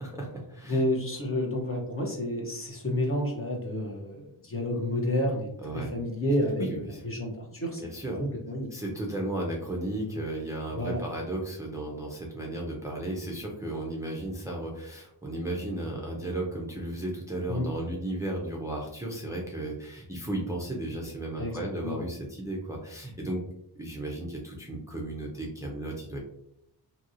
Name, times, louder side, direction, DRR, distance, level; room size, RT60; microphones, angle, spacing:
voice 1, 0.0-0.8 5.6-5.9 6.6-7.0 7.8-8.2 8.7-23.4 23.8-26.2, right 1 dB, 10° right, -2 dB, 0.5 m, -34 dB
voice 2, 0.7-5.5 5.7-7.9 8.1-8.7 10.7-11.0 17.5-17.7 21.4-22.0, left 1 dB, 30° left, 0 dB, 0.8 m, -30 dB
2.8 x 2.7 x 2.5 m, 0.76 s
wide cardioid pair, 105°, 42 cm